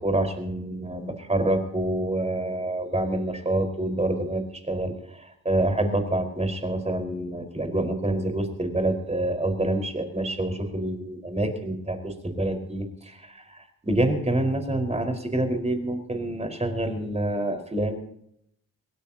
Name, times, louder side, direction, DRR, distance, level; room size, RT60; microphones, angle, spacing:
voice 1, 0.0-18.0, right 1 dB, 20° right, 5 dB, 4.7 m, -27 dB
23.0 x 17.5 x 2.9 m, 0.72 s
cardioid pair, 60°, 34 cm